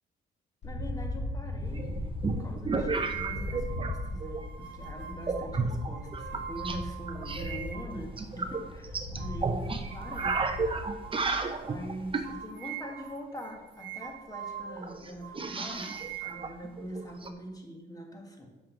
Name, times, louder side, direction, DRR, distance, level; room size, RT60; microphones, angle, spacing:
sound 1, 0.6-10.8, left 1 dB, 65° left, 2.1 m, -38 dB
voice 1, 0.6-10.5 10.8-11.2 11.6-18.5, equal, 20° left, 2 dB, 1.9 m, -43 dB
sound 2, 1.8-3.9 4.2-4.7 5.2-6.8 7.1-12.3 14.0-14.1 14.3-14.4 14.8-17.3, right 4 dB, 25° right, 0.8 m, -33 dB
sound 3, 2.9-8.0 8.5-8.7 9.2-9.4 9.9-10.8 11.0-11.2 11.6-11.8 12.2-14.9 15.2-17.0, right 10 dB, 65° right, 0.8 m, -43 dB
7.4 x 5.7 x 6.2 m, 1.1 s
cardioid pair, 90°, 20 cm